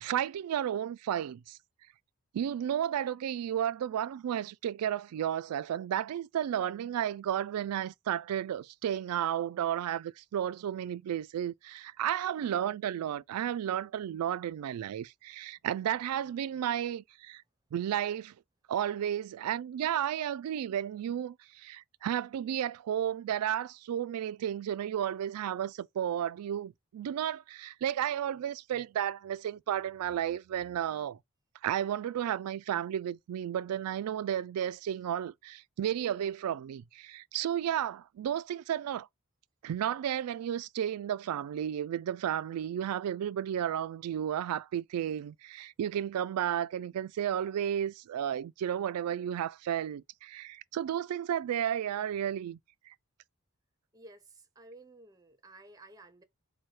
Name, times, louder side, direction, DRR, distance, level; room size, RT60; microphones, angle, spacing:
voice 1, 0.0-1.6 2.3-17.4 17.7-18.3 18.7-31.2 31.6-39.1 39.6-52.6 52.9-53.0, right 10 dB, 80° right, 0.3 m, -33 dB
voice 2, 53.9-56.2, right 2 dB, 15° right, 0.6 m, -53 dB
4.7 x 2.2 x 4.3 m
head